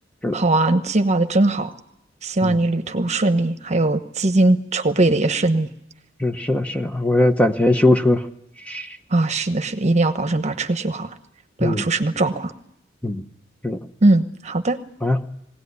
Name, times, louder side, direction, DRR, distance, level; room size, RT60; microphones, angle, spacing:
voice 1, 0.3-1.7 2.2-5.7 9.1-11.1 11.6-12.5 14.0-14.8, right 2 dB, 35° right, 10 dB, 1.1 m, -20 dB
voice 2, 6.2-8.2 8.7-8.9 11.6-11.9 13.0-13.2 13.6-13.8 15.0-15.2, left 1 dB, 5° left, 7 dB, 0.9 m, -20 dB
21.0 x 17.5 x 9.6 m, 0.78 s
head